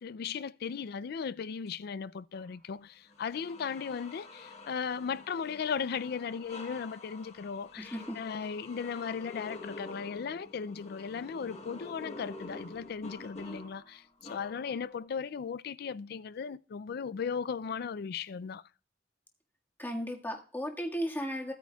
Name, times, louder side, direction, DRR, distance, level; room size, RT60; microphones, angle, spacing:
voice 1, 0.0-18.6, left 6 dB, 60° left, 0.4 m, -37 dB
sound 1, 2.3-2.5 3.1-15.1, left 2 dB, 40° left, 1.1 m, -48 dB
voice 2, 7.8-8.2 19.8-21.5, equal, 10° left, 1.7 m, -35 dB
16.0 x 9.1 x 2.3 m
head